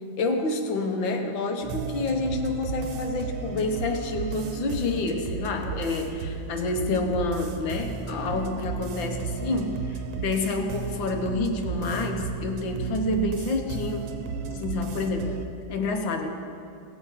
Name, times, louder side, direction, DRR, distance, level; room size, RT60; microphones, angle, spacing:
voice 1, 0.2-14.0 14.5-15.3 15.7-16.3, left 2 dB, 75° left, 4 dB, 1.8 m, -28 dB
sound 1, 1.6-15.5, right 5 dB, 75° right, 1.5 m, -34 dB
17.5 x 7.3 x 5.6 m, 2.5 s
omnidirectional pair, 2.2 m